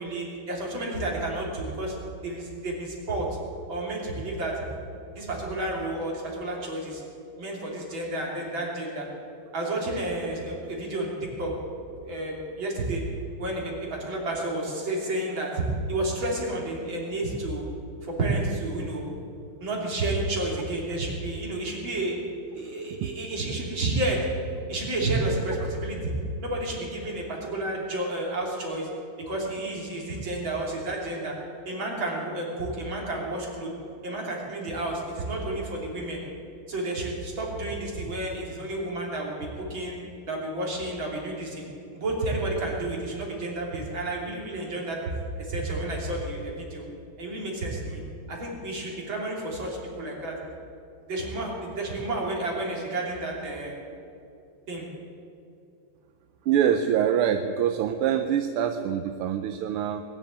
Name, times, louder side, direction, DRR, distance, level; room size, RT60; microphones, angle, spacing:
voice 1, 0.0-1.9 2.2-3.3 3.7-4.6 5.1-7.0 7.4-9.1 9.5-13.0 13.4-15.6 15.9-17.6 18.0-19.0 19.6-22.2 22.5-24.2 24.7-26.1 26.4-28.9 29.3-31.3 31.7-33.7 34.0-36.2 36.7-40.0 40.2-41.7 41.9-45.0 45.4-46.8 47.2-48.0 48.3-50.4 51.1-53.7 54.7-54.9, right 2 dB, 65° right, -2 dB, 3.9 m, -31 dB
voice 2, 56.5-60.0, right 9 dB, 85° right, 7 dB, 1.6 m, -24 dB
20.5 x 7.4 x 9.5 m, 2.6 s
omnidirectional pair, 2.4 m